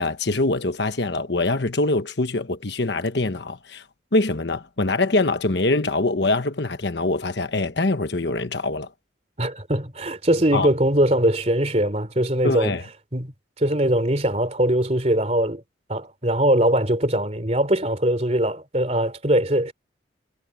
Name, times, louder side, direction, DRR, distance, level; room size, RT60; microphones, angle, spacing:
voice 1, 0.0-3.8 4.1-8.9 10.5-10.7 12.4-12.8, left 2 dB, 60° left, 1.2 m, -23 dB
voice 2, 9.4-12.7 13.1-15.6 15.9-19.7, right 1 dB, 35° right, 3.3 m, -21 dB
head